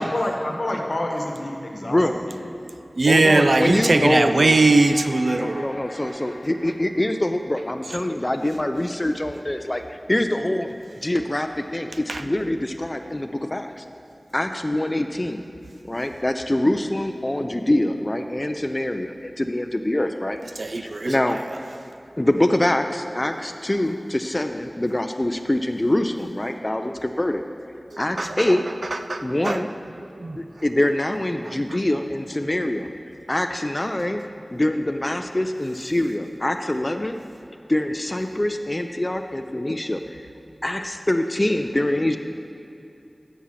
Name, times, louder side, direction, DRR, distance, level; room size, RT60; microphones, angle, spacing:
voice 1, 0.0-2.0 2.3-2.4, left 1 dB, 65° left, 1 dB, 1.0 m, -28 dB
voice 2, 1.8-2.1 3.1-4.6 5.3-10.7 11.0-13.8 14.3-15.4 15.8-20.4 20.8-21.4 22.2-27.4 28.0-28.7 29.2-29.7 30.4-32.9 33.3-34.2 34.5-37.2 37.7-40.2 40.6-42.2, left 1 dB, 30° left, 6 dB, 0.4 m, -24 dB
voice 3, 3.0-6.1 12.1-12.2 20.6-21.4 27.9-28.6 28.9-29.7 30.0-30.4 31.5-31.8, right 3 dB, 85° right, 9 dB, 0.3 m, -21 dB
sound 1, 3.3-9.3, left 1 dB, 90° left, 0.5 m, -41 dB
6.9 x 5.6 x 6.3 m, 2.7 s
wide cardioid pair, 55°, 0 cm